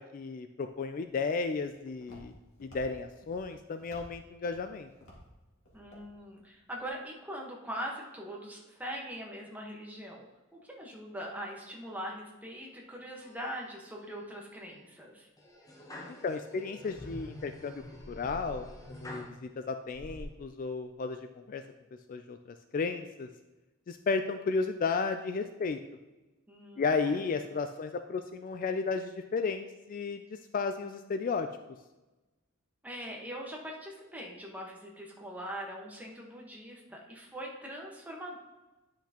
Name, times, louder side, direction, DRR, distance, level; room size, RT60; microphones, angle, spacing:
voice 1, 0.0-4.9 16.2-21.6 22.1-23.3 23.9-25.8 26.8-31.5, left 4 dB, 40° left, 8 dB, 0.3 m, -34 dB
Walk footsteps, 0.7-6.9, equal, 75° left, 2.2 m, -56 dB
voice 2, 5.7-10.2 10.5-15.3 26.5-27.2 32.8-38.4, equal, 10° right, -1 dB, 1.2 m, -42 dB
sound 1, 13.2-13.9 14.4-14.8 15.4-19.3 19.9-20.2, left 1 dB, 20° left, 0.9 m, -46 dB
10.0 x 5.8 x 2.9 m, 1.1 s
head